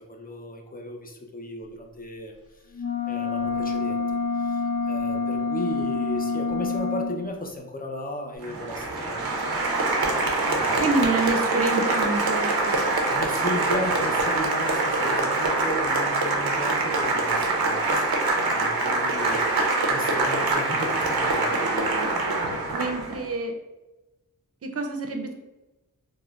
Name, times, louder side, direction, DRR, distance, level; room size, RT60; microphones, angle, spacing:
voice 1, 0.0-2.3 3.1-4.0 4.3-9.4 10.5-10.9 13.1-18.0 18.4-21.6, left 1 dB, 25° left, 2 dB, 0.5 m, -35 dB
sound 1, 2.7-7.2, left 4 dB, 85° left, 0.6 m, -27 dB
Applause, 8.4-23.2, right 2 dB, 85° right, 0.5 m, -24 dB
voice 2, 10.8-12.8 22.7-23.6 24.6-25.3, right 3 dB, 40° right, 3 dB, 0.5 m, -27 dB
3.6 x 2.0 x 2.3 m, 1.0 s
cardioid pair, 45°, 36 cm